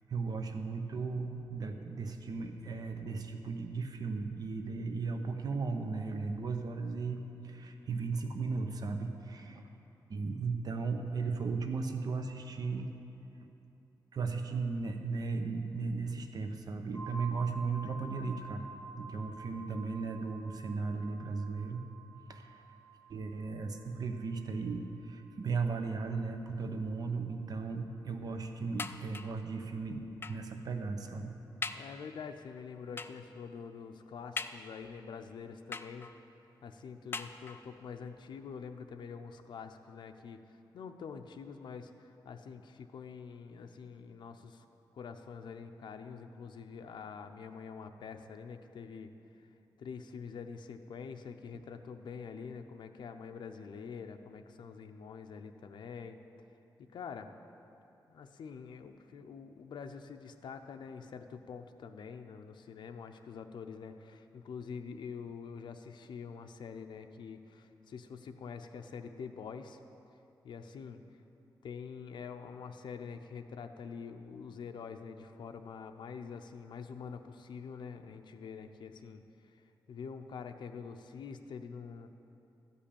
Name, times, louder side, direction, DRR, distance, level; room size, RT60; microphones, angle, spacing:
voice 1, 0.1-9.7 10.1-13.0 13.4-13.5 14.1-18.7 19.0-21.8 22.3-22.6 23.1-31.3, right 4 dB, 55° right, 5 dB, 0.8 m, -36 dB
sound 1, 16.9-26.6, right 3 dB, 5° left, 2.2 m, -50 dB
sound 2, 28.8-29.5 30.2-30.5 31.1-31.2 31.6-32.0 33.0-33.3 34.4-35.0 35.7-36.3 37.1-37.8 38.6-38.7 39.0-39.1, left 4 dB, 30° left, 0.3 m, -42 dB
voice 2, 31.7-36.1 36.6-44.7 44.9-49.1 49.4-49.5 49.8-56.2 56.8-57.3 58.1-69.8 70.4-71.0 71.6-82.1, left 6 dB, 80° left, 6 dB, 0.6 m, -46 dB
13.0 x 5.5 x 8.5 m, 2.8 s
wide cardioid pair, 155°, 8 cm